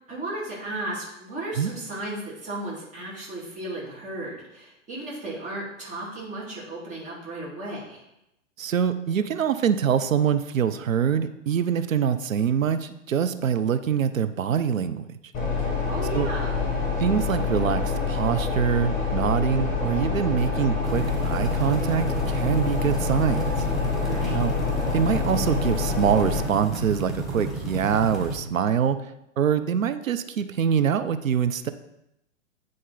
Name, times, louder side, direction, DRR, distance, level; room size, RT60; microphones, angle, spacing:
voice 1, 0.1-8.0 15.9-16.6 24.0-24.4, right 2 dB, 20° right, -6 dB, 2.5 m, -35 dB
voice 2, 8.6-15.1 16.1-16.3 17.0-23.4 24.3-24.5 24.9-29.0 29.4-31.7, right 8 dB, 80° right, 11 dB, 0.6 m, -24 dB
sound 1, 15.3-26.4, left 5 dB, 20° left, 1.8 m, -26 dB
sound 2, 20.8-28.4, right 2 dB, ahead, 1.2 m, -33 dB
9.5 x 3.8 x 3.9 m, 0.84 s
figure-of-eight pair, 115°, 39 cm